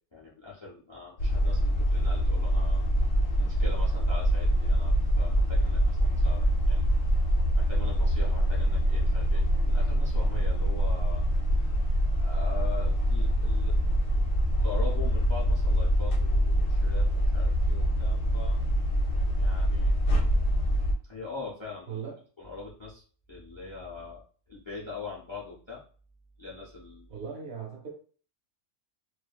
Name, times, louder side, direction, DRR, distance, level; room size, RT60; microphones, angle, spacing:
voice 1, 0.1-2.8 3.4-6.8 7.6-11.2 11.5-11.6 12.2-13.7 14.6-18.6 19.4-19.9 21.1-22.0 22.4-24.2 24.5-25.8 26.4-27.2, left 4 dB, 35° left, -5 dB, 0.5 m, -42 dB
sound 1, 1.2-20.9, equal, 75° left, 1.0 m, -25 dB
sound 2, 10.2-16.8, right 6 dB, 30° right, 0.8 m, -43 dB
voice 2, 21.9-22.2 27.1-27.9, right 6 dB, 55° right, -2 dB, 1.0 m, -38 dB
2.6 x 2.5 x 2.3 m, 0.41 s
omnidirectional pair, 1.4 m